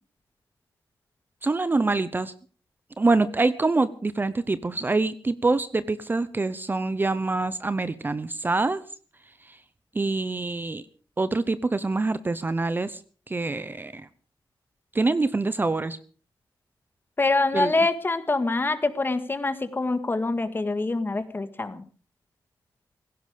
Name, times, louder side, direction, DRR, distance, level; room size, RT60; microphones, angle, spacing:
voice 1, 1.4-2.3 3.0-8.8 9.5-9.6 9.9-10.8 11.2-13.0 13.3-14.1 14.9-16.0 17.5-17.7, right 3 dB, 25° right, 15 dB, 0.7 m, -25 dB
voice 2, 17.2-21.8, left 3 dB, 25° left, 11 dB, 1.8 m, -25 dB
17.5 x 16.0 x 5.0 m, 0.42 s
wide cardioid pair, 125°, 8 cm